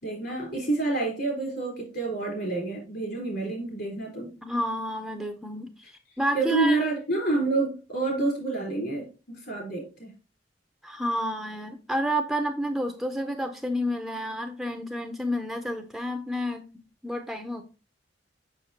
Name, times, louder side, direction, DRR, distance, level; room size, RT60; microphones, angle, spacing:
voice 1, 0.0-4.3 6.3-10.1, right 2 dB, 60° left, 0 dB, 3.8 m, -28 dB
voice 2, 4.4-5.7 6.2-6.8 10.8-16.6 17.0-17.6, equal, ahead, 6 dB, 0.5 m, -30 dB
6.5 x 6.0 x 2.8 m, 0.32 s
head